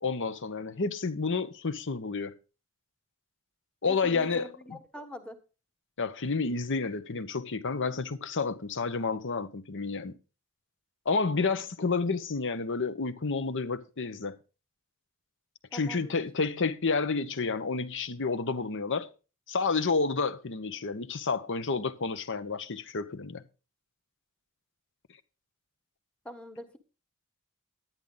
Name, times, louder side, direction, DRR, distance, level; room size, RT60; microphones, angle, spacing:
voice 1, 0.0-2.3 3.8-4.8 6.0-10.1 11.1-14.4 15.7-19.1 19.5-23.4, left 4 dB, 60° left, 1.0 m, -30 dB
voice 2, 3.9-5.4 11.3-11.7 15.7-16.2 26.2-26.8, equal, 5° left, 1.4 m, -44 dB
10.5 x 10.0 x 3.9 m
head